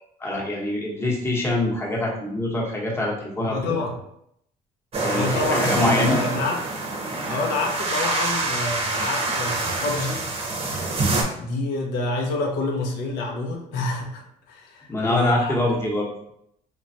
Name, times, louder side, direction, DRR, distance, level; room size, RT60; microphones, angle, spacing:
voice 1, 0.2-3.6 5.0-6.2 14.9-16.1, left 1 dB, 15° left, -3 dB, 0.8 m, -24 dB
voice 2, 3.4-4.0 5.1-6.7 7.3-10.3 11.0-15.6, left 2 dB, 90° left, 1 dB, 0.6 m, -28 dB
sound 1, 4.9-11.2, right 2 dB, 35° right, 0.6 m, -26 dB
3.2 x 2.2 x 2.6 m, 0.75 s
cardioid pair, 110°, 17 cm